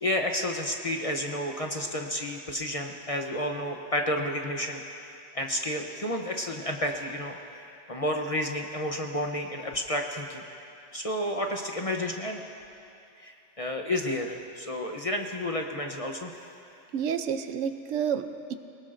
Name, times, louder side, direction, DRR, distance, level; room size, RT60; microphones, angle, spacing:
voice 1, 0.0-7.4 7.9-10.4 10.9-12.4 13.2-16.3, left 1 dB, 35° left, 2 dB, 0.7 m, -31 dB
voice 2, 16.9-18.6, right 8 dB, 80° right, 9 dB, 1.0 m, -30 dB
22.0 x 19.0 x 2.5 m, 2.7 s
omnidirectional pair, 1.3 m